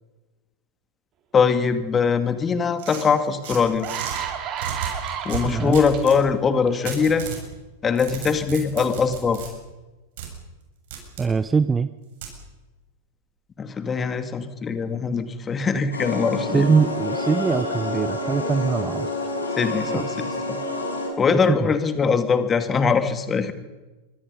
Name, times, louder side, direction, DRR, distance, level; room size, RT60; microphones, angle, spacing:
voice 1, 1.3-3.9 5.2-7.3 7.8-9.4 13.6-16.7 19.6-20.6 21.2-23.5, left 5 dB, 20° left, 9 dB, 2.4 m, -22 dB
sound 1, 2.8-4.2 4.6-6.2 6.9-7.4 7.8-9.5 10.2-10.3 10.9-11.3 12.2-12.4, right 8 dB, 55° right, 6.7 m, -34 dB
sound 2, 3.1-3.2 3.6-6.0 6.7-6.9, right 9 dB, 35° right, 3.6 m, -31 dB
voice 2, 5.4-5.8 11.2-11.9 16.5-19.1 19.9-20.3 21.5-21.7, right 5 dB, 15° right, 15 dB, 0.7 m, -22 dB
sound 3, 15.9-21.1, left 2 dB, 75° left, 6.1 m, -28 dB
26.0 x 24.0 x 5.4 m, 1.2 s
figure-of-eight pair, 90°, 0 cm